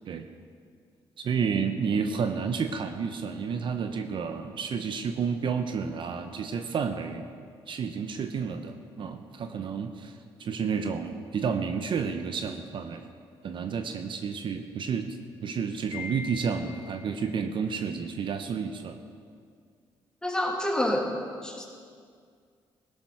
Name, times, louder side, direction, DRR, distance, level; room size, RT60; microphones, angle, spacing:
voice 1, 1.2-7.3 7.7-13.1 13.4-19.0, right 6 dB, 55° right, 7 dB, 0.9 m, -31 dB
Wind chime, 15.9-17.3, left 4 dB, 85° left, 0.8 m, -41 dB
voice 2, 20.2-21.1 21.4-21.6, left 1 dB, 10° left, 0 dB, 2.7 m, -27 dB
16.5 x 12.0 x 4.8 m, 2.1 s
supercardioid pair, 70°, 10 cm